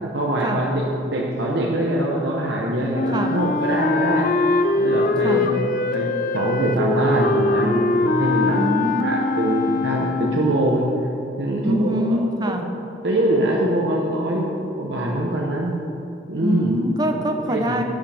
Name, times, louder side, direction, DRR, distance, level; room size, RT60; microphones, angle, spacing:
voice 1, 0.1-4.3 4.8-5.6 5.9-8.6 9.0-10.9 11.4-12.0 12.4-12.5 13.0-15.7 16.3-16.7 17.1-17.7, right 1 dB, 70° right, -2 dB, 1.0 m, -23 dB
Wind instrument woodwind instrument, 2.9-10.6, left 3 dB, 45° left, 0.5 m, -22 dB
voice 2, 8.5-9.1 11.6-12.7 16.4-17.8, equal, 20° right, 4 dB, 0.7 m, -24 dB
10.5 x 9.6 x 3.5 m, 2.8 s
head